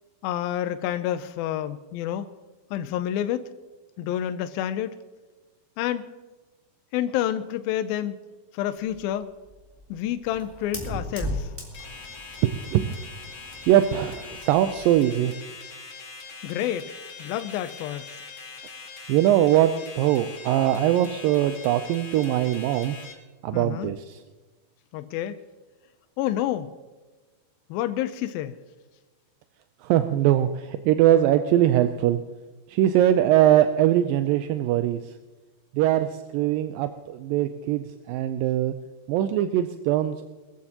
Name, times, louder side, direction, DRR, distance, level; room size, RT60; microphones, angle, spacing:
voice 1, 0.2-2.3 2.7-3.5 4.0-5.0 5.8-6.1 6.9-8.2 8.5-9.3 9.9-11.5 16.4-18.2 23.5-24.0 24.9-25.4 26.2-26.7 27.7-28.6, left 11 dB, 80° left, 10 dB, 2.4 m, -29 dB
Fire, 8.9-15.0, equal, 5° right, 3.1 m, -38 dB
sound 1, 11.7-23.1, left 4 dB, 55° left, 3.9 m, -42 dB
voice 2, 12.4-13.0 13.7-15.4 19.1-23.0 23.4-24.2 29.8-32.2 32.7-35.0 35.7-38.7 39.1-40.2, right 12 dB, 80° right, 9 dB, 2.2 m, -22 dB
22.5 x 14.5 x 2.9 m, 1.2 s
omnidirectional pair, 4.3 m